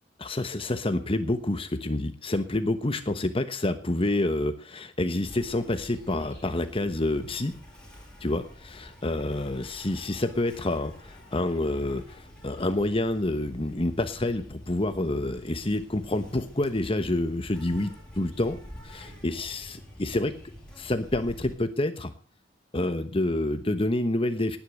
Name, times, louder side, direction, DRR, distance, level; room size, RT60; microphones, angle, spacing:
voice 1, 0.2-7.6 8.2-20.3 20.8-22.1 22.7-24.6, left 1 dB, 30° left, 9 dB, 1.1 m, -28 dB
Insect, 5.3-21.5, equal, 5° left, 6.9 m, -47 dB
19.5 x 10.5 x 6.4 m, 0.42 s
head